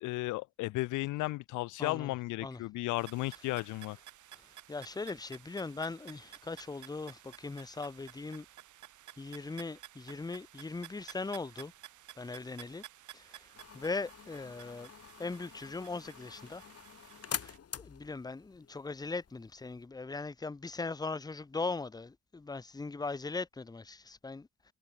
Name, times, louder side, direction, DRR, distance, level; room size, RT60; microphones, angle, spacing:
voice 1, 0.0-4.0, left 20 dB, 85° left, 0.4 m, -34 dB
voice 2, 1.8-2.1 2.4-2.6 4.3-4.4 4.7-8.5 9.2-11.7 12.2-12.8 13.1-14.9 15.2-16.6 17.4-24.5, left 3 dB, 15° left, 0.7 m, -39 dB
sound 1, 3.0-17.6, right 13 dB, 75° right, 3.3 m, -54 dB
sound 2, 13.5-19.9, left 8 dB, 50° left, 5.0 m, -46 dB
cardioid pair, 90°, 30 cm